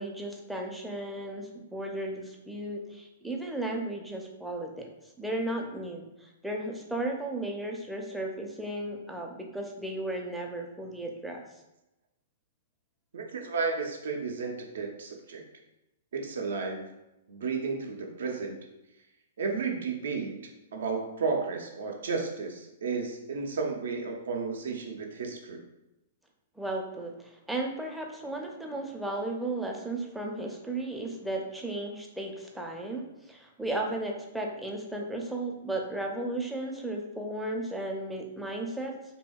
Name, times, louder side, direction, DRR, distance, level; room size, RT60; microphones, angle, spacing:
voice 1, 0.0-4.9 5.2-11.4 26.6-38.9, right 1 dB, 5° right, 1 dB, 0.4 m, -35 dB
voice 2, 13.1-15.4 16.1-16.9 17.3-18.6 19.4-20.4 20.7-25.6, right 4 dB, 75° right, 2 dB, 0.5 m, -33 dB
2.7 x 2.7 x 2.2 m, 0.93 s
hypercardioid pair, 120°, 0 cm